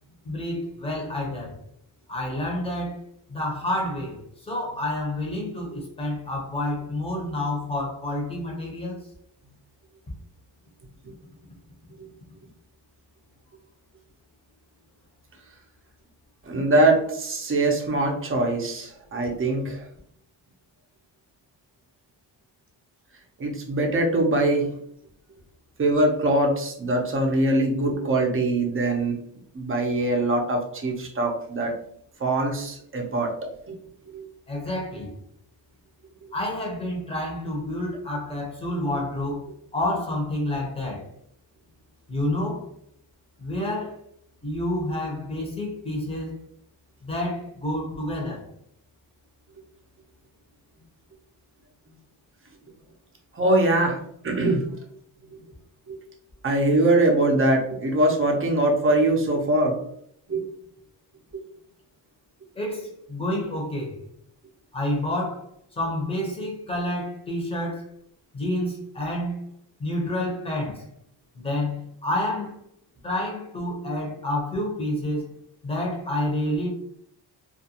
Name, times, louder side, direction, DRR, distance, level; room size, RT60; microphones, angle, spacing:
voice 1, 0.2-1.6 2.1-3.0 3.3-9.0 34.5-35.1 36.3-41.0 42.1-42.6 43.4-43.9 44.4-46.4 47.0-48.4 62.6-64.0 64.7-65.5 65.8-67.9 68.3-69.4 69.8-70.9 71.3-72.6 73.0-76.7, left 1 dB, 15° left, 0.8 m, -29 dB
voice 2, 16.4-19.8 23.4-24.7 25.8-29.1 29.5-31.7 32.2-33.3 33.7-33.8 34.1-34.3 53.3-54.7 55.9-56.0 56.4-59.8 60.3-60.4, right 2 dB, 30° right, 0.6 m, -22 dB
2.5 x 2.2 x 2.8 m
wide cardioid pair, 115°, 44 cm